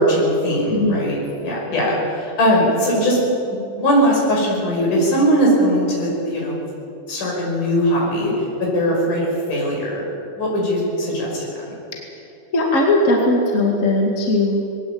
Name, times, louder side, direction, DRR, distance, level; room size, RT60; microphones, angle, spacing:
voice 1, 0.0-3.2 3.5-6.6 7.1-8.3 8.7-10.0 10.4-11.5, equal, 75° left, -3 dB, 7.1 m, -20 dB
voice 2, 0.7-1.0 12.5-14.7, left 2 dB, 25° left, 0 dB, 2.3 m, -18 dB
21.5 x 17.5 x 8.7 m, 2.7 s
omnidirectional pair, 3.6 m